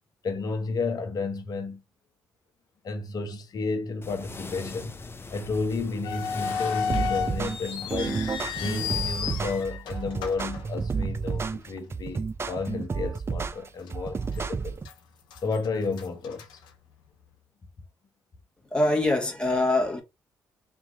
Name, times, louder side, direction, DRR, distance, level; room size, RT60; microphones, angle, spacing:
voice 1, 0.2-1.8 2.8-4.9 5.3-8.3 8.6-14.8 15.4-16.6, left 4 dB, 55° left, 1.0 m, -32 dB
sound 1, 4.0-9.6, left 3 dB, 30° left, 0.6 m, -42 dB
sound 2, 6.0-11.4 11.7-11.8 12.5-12.7 13.2-13.3 13.9-14.5 14.8-17.3, left 7 dB, 80° left, 0.7 m, -33 dB
sound 3, 6.9-14.9, right 5 dB, 35° right, 0.5 m, -31 dB
voice 2, 18.7-20.0, left 2 dB, 10° left, 1.4 m, -24 dB
3.5 x 2.9 x 3.7 m
hypercardioid pair, 50°, 8 cm